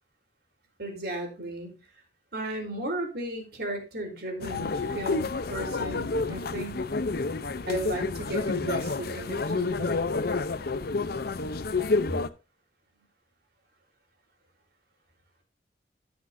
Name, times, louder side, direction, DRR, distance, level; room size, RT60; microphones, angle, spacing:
voice 1, 0.8-1.7 2.3-6.8 7.7-10.1, right 1 dB, 60° right, 3 dB, 3.7 m, -35 dB
sound 1, 4.4-12.3, left 3 dB, 60° left, 0.7 m, -29 dB
16.5 x 6.4 x 2.6 m, 0.29 s
head